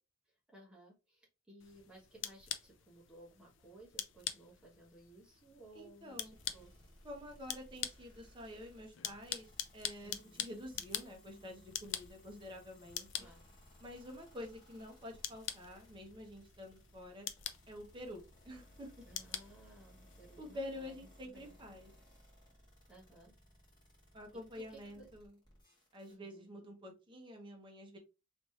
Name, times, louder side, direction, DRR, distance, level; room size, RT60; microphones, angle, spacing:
voice 1, 0.5-6.7 9.9-10.5 13.2-13.4 19.1-21.5 22.9-23.3 24.3-25.1 26.1-26.5, right 1 dB, 5° right, -3 dB, 1.3 m, -59 dB
sound 1, 1.6-20.4, left 10 dB, 65° left, 0.4 m, -46 dB
voice 2, 5.7-6.4 7.0-13.3 13.8-17.3 17.7-18.9 20.4-21.9 24.1-25.3 25.9-28.0, left 1 dB, 25° right, 1 dB, 1.0 m, -48 dB
sound 2, 6.3-26.2, equal, 20° left, 1.6 m, -62 dB
3.1 x 3.1 x 2.8 m, 0.28 s
head